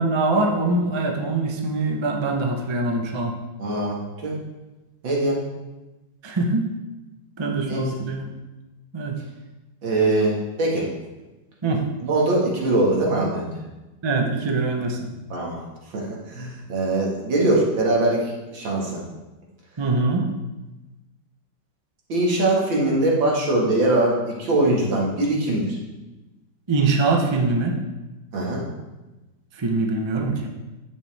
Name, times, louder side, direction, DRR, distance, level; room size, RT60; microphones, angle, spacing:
voice 1, 0.0-3.4 6.2-6.7 7.4-8.3 8.9-9.2 11.6-11.9 14.0-15.1 19.8-20.3 26.7-27.7 29.6-30.5, right 3 dB, 30° right, 2 dB, 0.5 m, -23 dB
voice 2, 3.6-4.3 5.0-5.4 7.7-7.9 9.8-10.9 12.0-13.5 15.3-15.6 15.9-19.0 22.1-25.8 28.3-28.7, right 2 dB, 85° right, -3 dB, 2.6 m, -22 dB
9.9 x 8.3 x 3.5 m, 1.1 s
omnidirectional pair, 2.0 m